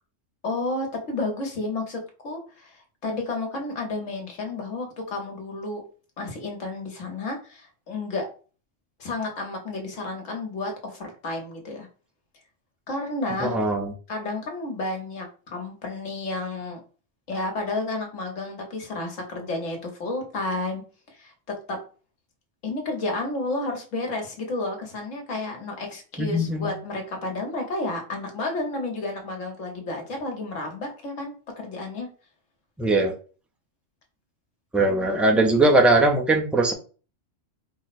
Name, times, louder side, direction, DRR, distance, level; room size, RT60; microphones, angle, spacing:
voice 1, 0.4-5.8 6.2-8.3 9.0-11.9 12.9-13.5 14.1-16.8 17.3-21.3 21.7-21.8 22.6-32.1, left 2 dB, 90° left, 2 dB, 1.5 m, -31 dB
voice 2, 13.4-13.9 26.2-26.7 32.8-33.1 34.7-36.7, right 2 dB, ahead, 2 dB, 0.4 m, -20 dB
4.7 x 2.1 x 4.1 m, 0.37 s
omnidirectional pair, 1.3 m